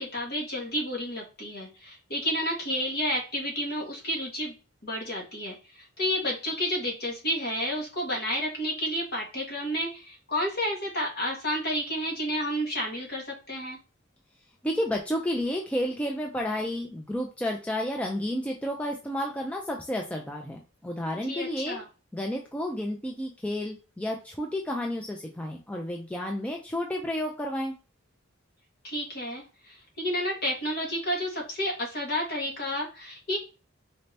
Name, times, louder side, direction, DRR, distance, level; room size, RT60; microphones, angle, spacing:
voice 1, 0.0-4.5 4.8-5.6 6.0-13.8 21.3-21.8 28.8-33.4, equal, 50° left, -1 dB, 1.4 m, -31 dB
voice 2, 14.6-21.8 22.1-27.7, left 1 dB, 5° left, 1 dB, 0.3 m, -31 dB
4.1 x 2.6 x 3.3 m, 0.33 s
head